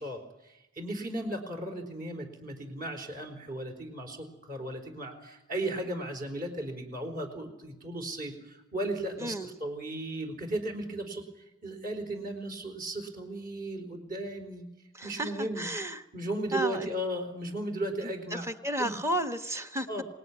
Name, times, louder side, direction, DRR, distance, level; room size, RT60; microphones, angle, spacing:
voice 1, 0.0-14.7 15.0-15.7 16.1-18.5 18.8-19.0 19.9-20.0, right 1 dB, 40° right, 4 dB, 4.2 m, -36 dB
voice 2, 9.2-9.5 15.0-16.0 16.5-16.9 18.0-20.0, right 1 dB, 15° right, 9 dB, 1.1 m, -33 dB
27.5 x 18.5 x 9.8 m, 1.0 s
head